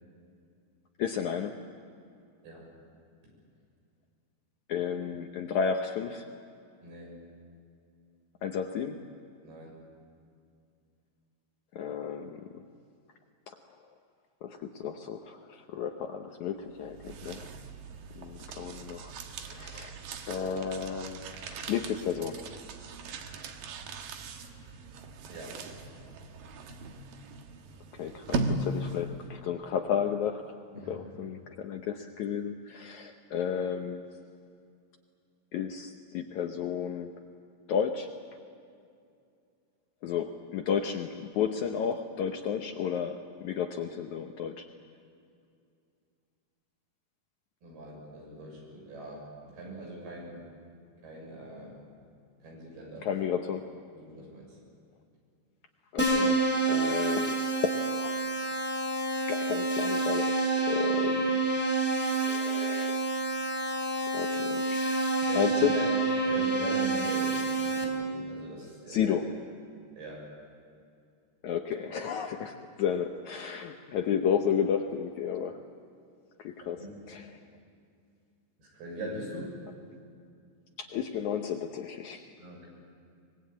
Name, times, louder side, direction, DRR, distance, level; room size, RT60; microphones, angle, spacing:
voice 1, 1.0-1.6 4.7-6.3 8.4-9.0 11.7-12.6 13.5-13.6 14.4-17.6 18.1-19.1 19.4-20.0 20.3-21.2 21.5-22.5 27.9-30.5 30.9-34.1 35.5-37.1 37.7-38.1 40.0-44.7 53.0-53.7 55.9-58.2 59.3-61.4 62.1-63.0 64.1-65.7 68.9-69.3 71.4-75.6 76.4-77.4 80.8-82.3, left 7 dB, 75° left, 5 dB, 1.8 m, -32 dB
voice 2, 6.8-7.2 9.4-9.8 25.3-25.6 30.7-31.1 47.6-50.4 51.0-51.8 52.4-53.1 53.9-54.6 65.3-65.9 66.2-69.2 69.9-70.3 76.6-76.9 78.6-79.6 82.4-82.7, right 2 dB, 85° right, -1 dB, 8.8 m, -42 dB
sound 1, 16.7-29.3, right 3 dB, 70° right, 3.0 m, -39 dB
Keyboard (musical), 56.0-67.8, right 3 dB, 5° left, 3.4 m, -28 dB
24.0 x 21.5 x 8.6 m, 2.4 s
omnidirectional pair, 4.4 m